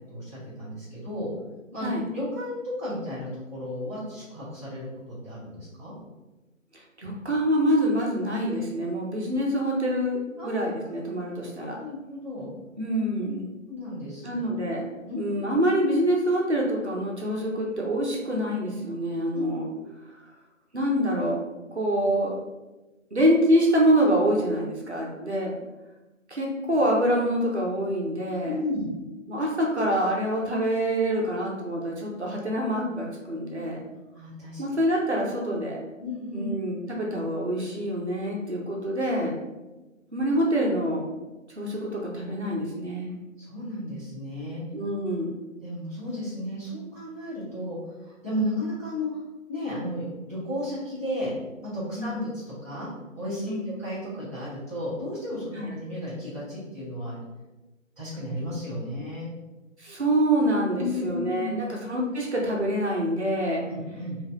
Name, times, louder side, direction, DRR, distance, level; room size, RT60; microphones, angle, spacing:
voice 1, 0.1-1.3 1.7-1.9 2.1-5.9 10.4-10.9 11.8-12.5 13.6-14.3 15.0-15.2 19.3-19.4 19.7-19.9 26.6-26.7 28.4-28.9 34.1-34.6 36.0-36.5 43.4-44.6 45.6-49.2 49.5-51.3 51.6-52.9 53.1-57.2 58.0-59.3 60.7-61.8 63.7-64.2, left 1 dB, 10° left, -17 dB, 1.3 m, -34 dB
voice 2, 6.7-11.8 12.8-13.5 14.2-14.9 15.1-19.6 20.7-21.4 21.7-22.4 23.1-25.6 26.3-28.6 29.3-33.8 34.6-35.8 36.3-39.3 40.1-41.1 41.5-43.1 44.7-45.4 52.0-52.2 53.4-53.7 55.5-55.7 59.8-63.6, equal, 55° right, -2 dB, 1.0 m, -26 dB
4.6 x 2.6 x 3.8 m, 1.1 s
figure-of-eight pair, 175°, 41 cm